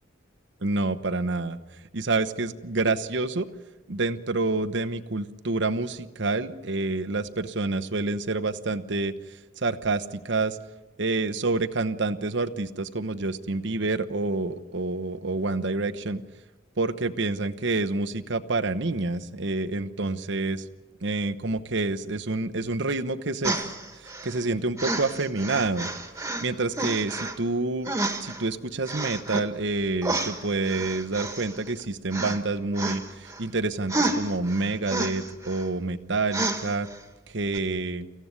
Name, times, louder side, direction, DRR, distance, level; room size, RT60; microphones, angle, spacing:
voice 1, 0.6-1.6 1.9-3.5 3.9-9.1 9.6-10.6 11.0-16.2 16.8-20.7 21.0-23.6 24.0-25.9 26.4-27.9 28.2-36.9 37.3-38.1, right 3 dB, 60° right, 12 dB, 1.0 m, -28 dB
sound 1, 23.4-24.4 24.8-26.5 26.7-27.4 27.8-28.4 28.9-29.5 30.0-31.8 32.1-32.4 32.8-33.4 33.9-35.6 36.3-37.0 37.5-37.6, right 2 dB, 15° right, 1.7 m, -30 dB
25.5 x 15.5 x 9.7 m, 1.2 s
head